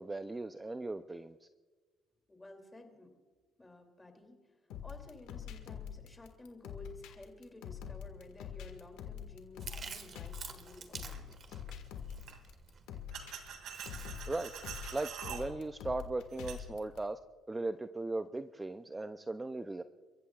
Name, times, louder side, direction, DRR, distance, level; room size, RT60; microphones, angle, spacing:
voice 1, 0.0-1.5 14.3-14.5 14.9-17.2 17.5-19.8, right 2 dB, 15° right, 10 dB, 0.5 m, -38 dB
voice 2, 2.3-3.1 3.6-4.4 4.8-11.3, left 2 dB, 15° left, 4 dB, 2.7 m, -53 dB
sound 1, 4.7-17.0, left 8 dB, 85° left, 1.7 m, -45 dB
Chewing mastication, 9.6-15.1, right 6 dB, 45° right, 1.5 m, -50 dB
sound 2, 11.0-11.2 12.3-12.4 13.1-15.4 16.3-16.6, right 8 dB, 75° right, 2.4 m, -45 dB
29.5 x 15.0 x 2.4 m, 1.4 s
cardioid pair, 95°, 0 cm